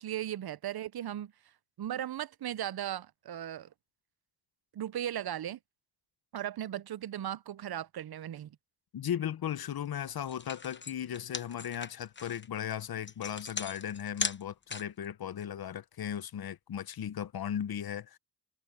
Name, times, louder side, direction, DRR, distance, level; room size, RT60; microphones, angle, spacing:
voice 1, 0.0-1.3 1.8-3.7 4.7-5.6 6.3-8.6, right 11 dB, 75° right, 0.6 m, -37 dB
voice 2, 8.9-18.2, left 9 dB, 70° left, 0.7 m, -36 dB
sound 1, 9.9-10.0 10.3-15.1, left 4 dB, 30° left, 0.8 m, -38 dB
wide cardioid pair, 115°, 38 cm